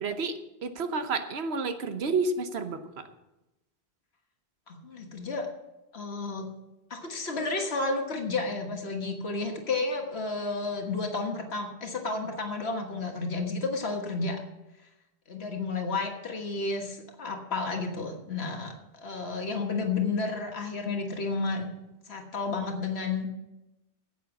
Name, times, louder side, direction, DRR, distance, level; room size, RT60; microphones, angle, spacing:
voice 1, 0.0-3.1, right 3 dB, 85° right, 8 dB, 1.2 m, -30 dB
voice 2, 4.7-5.5 5.9-6.5 6.9-14.4 15.3-21.7 22.1-23.3, left 3 dB, 85° left, 3 dB, 1.7 m, -31 dB
10.0 x 8.1 x 7.1 m, 0.97 s
omnidirectional pair, 1.1 m